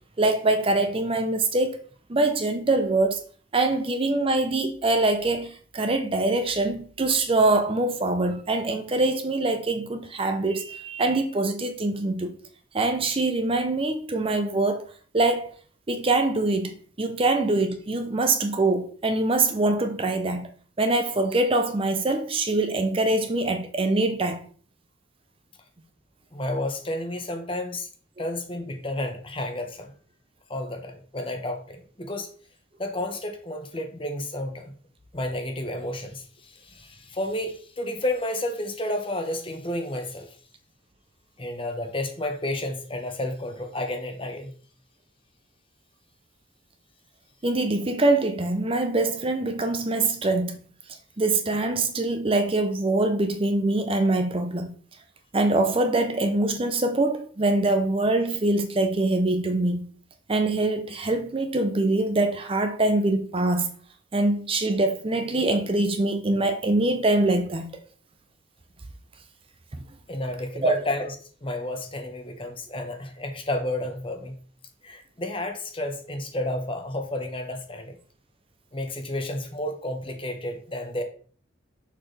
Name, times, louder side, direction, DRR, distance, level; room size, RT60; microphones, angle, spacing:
voice 1, 0.2-1.8 2.1-3.2 3.5-12.4 12.7-14.9 15.1-15.5 15.9-20.5 20.8-24.4 47.4-50.6 51.2-54.7 55.3-59.9 60.3-63.7 64.1-67.7 70.6-70.7, right 2 dB, 30° right, 0.6 m, -24 dB
voice 2, 26.3-27.9 28.2-29.9 30.5-32.3 32.8-34.7 35.1-40.3 41.4-44.5 70.1-71.1 71.4-74.4 74.8-78.0 78.7-81.0, left 1 dB, 25° left, 1.0 m, -31 dB
6.5 x 5.8 x 3.3 m
head